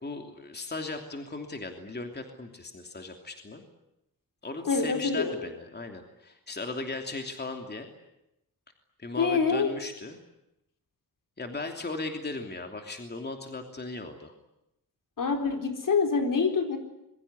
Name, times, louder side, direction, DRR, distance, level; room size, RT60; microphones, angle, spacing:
voice 1, 0.0-3.6 4.4-7.9 9.0-10.2 11.4-14.3, left 3 dB, 30° left, 4 dB, 3.0 m, -37 dB
voice 2, 4.6-5.4 9.2-9.7 15.2-16.8, left 5 dB, 65° left, 5 dB, 4.3 m, -26 dB
26.0 x 23.0 x 9.7 m, 0.86 s
wide cardioid pair, 155°, 35 cm